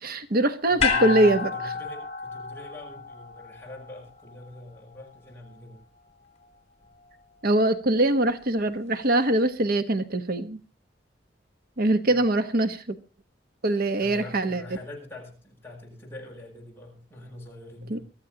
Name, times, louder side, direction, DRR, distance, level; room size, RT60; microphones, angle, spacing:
voice 1, 0.0-1.5 7.4-10.6 11.8-13.0 13.6-14.6 17.9-18.0, right 1 dB, 55° right, 10 dB, 1.1 m, -23 dB
voice 2, 0.7-5.8 12.0-12.2 14.0-18.0, left 1 dB, 15° left, -2 dB, 7.8 m, -44 dB
sound 1, 0.8-5.1 5.5-5.6, left 5 dB, 35° left, 3.8 m, -30 dB
23.5 x 14.0 x 2.8 m, 0.33 s
head